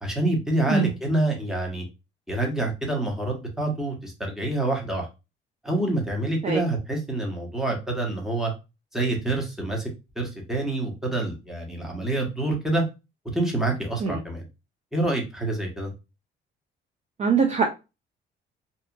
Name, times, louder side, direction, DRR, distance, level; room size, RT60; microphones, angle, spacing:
voice 1, 0.0-1.8 2.3-5.1 5.6-8.5 8.9-9.9 10.2-12.8 13.3-14.4 14.9-15.9, right 2 dB, ahead, 1.0 m, -27 dB
voice 2, 17.2-17.7, right 5 dB, 35° right, 0.5 m, -22 dB
2.8 x 2.4 x 2.4 m
cardioid pair, 90°, 20 cm